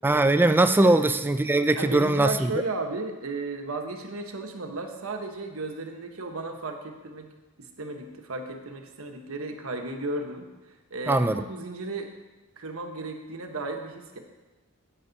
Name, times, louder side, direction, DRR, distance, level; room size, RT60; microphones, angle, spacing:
voice 1, 0.0-2.5 11.1-11.4, right 2 dB, 10° right, 10 dB, 0.3 m, -21 dB
voice 2, 1.7-7.3 7.8-10.5 10.9-12.1 12.6-14.2, right 2 dB, 80° right, 4 dB, 1.2 m, -34 dB
10.5 x 8.7 x 4.0 m, 1.1 s
head